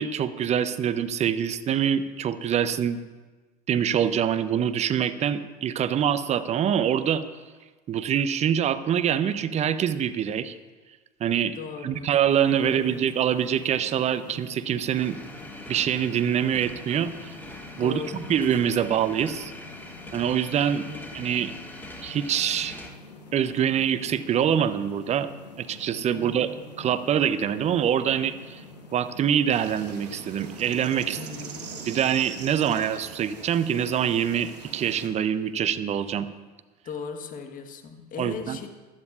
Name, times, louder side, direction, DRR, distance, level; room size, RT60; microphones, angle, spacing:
voice 1, 0.0-3.0 3.7-7.2 7.9-10.5 11.2-11.6 11.8-15.2 15.7-17.4 17.8-19.5 20.1-20.9 21.1-21.5 22.0-22.8 23.3-25.3 25.6-26.5 26.8-28.6 28.9-31.2 31.9-36.3 38.2-38.6, right 9 dB, 35° right, 13 dB, 0.7 m, -25 dB
voice 2, 11.6-12.1 12.6-13.0 17.7-18.3 20.7-21.3 26.1-26.8 31.1-31.8 36.8-38.7, left 5 dB, 40° left, 6 dB, 1.3 m, -38 dB
sound 1, 12.3-31.9, left 3 dB, 90° left, 1.3 m, -47 dB
sound 2, 15.0-22.9, left 1 dB, 10° left, 1.1 m, -43 dB
sound 3, 29.5-35.1, right 5 dB, 80° right, 1.4 m, -42 dB
14.5 x 11.5 x 2.5 m, 1.3 s
hypercardioid pair, 75°, 21 cm